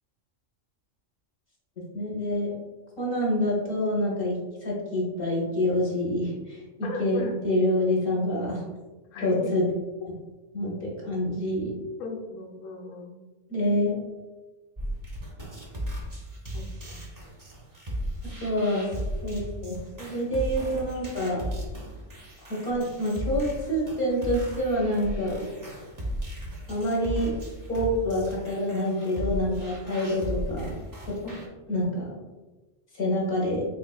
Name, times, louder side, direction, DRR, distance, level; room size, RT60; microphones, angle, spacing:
voice 1, 1.9-2.5 3.0-6.6 7.0-8.6 9.2-9.6 10.5-11.7 13.5-14.0 18.4-18.9 19.2-21.5 22.4-25.5 26.7-27.3 27.7-30.8 31.7-32.1 33.0-33.7, left 1 dB, 50° left, -3 dB, 1.0 m, -27 dB
voice 2, 6.8-7.4 9.1-9.5 12.0-13.2 16.5-17.0 31.2-31.4, left 3 dB, 85° left, 1 dB, 1.0 m, -37 dB
sound 1, 14.8-31.5, equal, 25° right, 0.5 m, -36 dB
3.5 x 3.3 x 2.3 m, 1.2 s
omnidirectional pair, 1.3 m